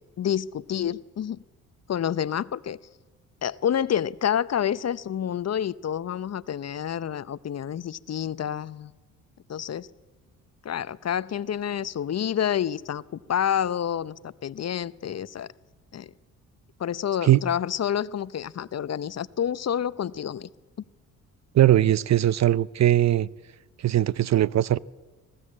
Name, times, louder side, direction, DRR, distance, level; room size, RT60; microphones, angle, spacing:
voice 1, 0.2-1.4 1.9-2.8 3.4-8.9 9.5-9.9 10.6-13.0 13.3-15.5 15.9-16.1 16.8-20.5, left 9 dB, 40° left, 0.7 m, -28 dB
voice 2, 21.5-23.3 23.8-24.8, right 13 dB, 45° right, 0.6 m, -20 dB
20.0 x 15.5 x 8.6 m
hypercardioid pair, 55°, 39 cm